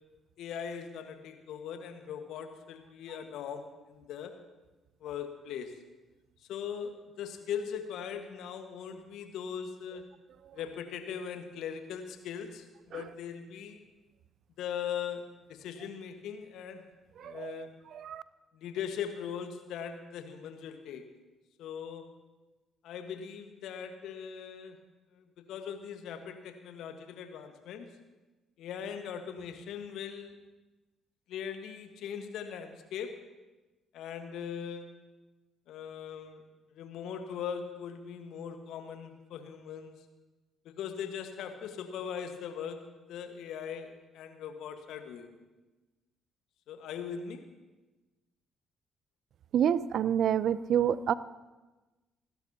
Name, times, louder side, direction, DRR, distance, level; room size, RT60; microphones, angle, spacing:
voice 1, 0.4-4.3 5.0-5.7 6.5-10.0 10.5-13.8 14.6-15.2 15.5-16.8 17.2-17.7 18.5-21.0 21.6-22.0 22.8-24.8 25.1-27.9 28.6-30.3 31.3-33.1 33.9-34.9 35.7-36.4 36.7-39.9 40.6-42.8 43.1-45.3 46.7-47.4, left 8 dB, 65° left, 6 dB, 1.5 m, -40 dB
voice 2, 17.2-18.2 49.5-51.1, right 9 dB, 60° right, 18 dB, 0.5 m, -29 dB
27.0 x 12.5 x 2.9 m, 1.1 s
hypercardioid pair, 45°, 0 cm